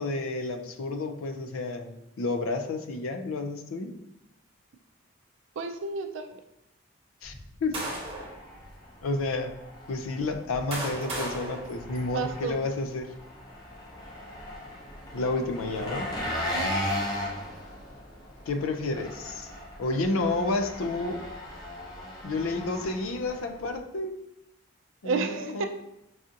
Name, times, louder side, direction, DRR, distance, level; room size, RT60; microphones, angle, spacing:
voice 1, 0.0-3.9 7.2-7.3 7.6-7.9 9.0-9.5 9.9-13.1 15.1-16.1 18.5-19.5 19.8-21.2 22.2-24.1 25.0-25.6, left 3 dB, 90° left, 6 dB, 0.4 m, -30 dB
voice 2, 5.6-6.4 12.1-12.6 16.5-16.8 25.0-25.6, right 4 dB, 70° right, 6 dB, 0.4 m, -31 dB
sound 1, 7.2-8.4 9.2-9.3 10.2-12.5, right 2 dB, 30° right, 1.0 m, -36 dB
Engine, 8.0-23.8, left 1 dB, 20° left, 0.5 m, -37 dB
4.8 x 2.5 x 2.7 m, 0.85 s
head